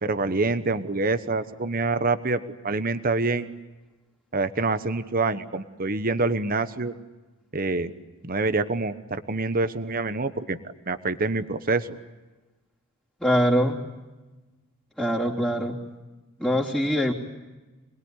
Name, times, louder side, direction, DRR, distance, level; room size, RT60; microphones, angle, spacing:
voice 1, 0.0-3.5 4.3-6.9 7.5-7.9 8.2-10.6 10.9-11.9, right 3 dB, 40° right, 11 dB, 1.1 m, -26 dB
voice 2, 13.2-13.8 15.0-15.8 16.4-17.1, equal, 5° left, -5 dB, 3.1 m, -23 dB
27.0 x 21.0 x 9.8 m, 1.2 s
head